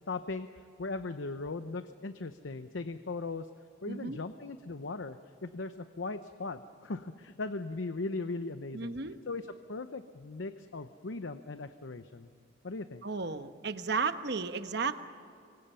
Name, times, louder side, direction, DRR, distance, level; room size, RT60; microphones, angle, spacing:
voice 1, 0.1-0.5 0.8-3.5 3.8-9.0 9.3-12.3 12.6-13.0, left 3 dB, 75° left, 10 dB, 0.8 m, -38 dB
voice 2, 8.7-9.2 13.0-15.0, right 4 dB, 55° right, 9 dB, 1.1 m, -34 dB
26.5 x 24.0 x 5.6 m, 2.5 s
head